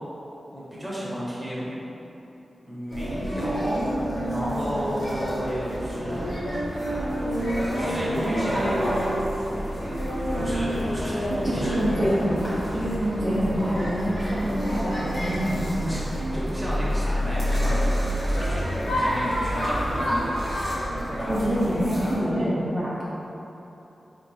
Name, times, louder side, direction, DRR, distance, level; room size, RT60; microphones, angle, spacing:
voice 1, 0.5-1.7 2.6-4.0 4.3-6.3 7.7-9.1 10.4-11.3 11.5-11.8 15.8-17.9 18.4-18.6 18.9-20.4 21.1-21.4 21.9-22.4, equal, ahead, -9 dB, 1.3 m, -32 dB
sound 1, 2.9-22.1, equal, 75° left, 1.4 m, -28 dB
sound 2, 5.4-19.0, equal, 75° right, 1.1 m, -41 dB
voice 2, 11.4-16.1 21.3-22.9, equal, 35° right, -9 dB, 0.7 m, -26 dB
3.7 x 2.5 x 4.6 m, 3.0 s
wide cardioid pair, 75°, 0 cm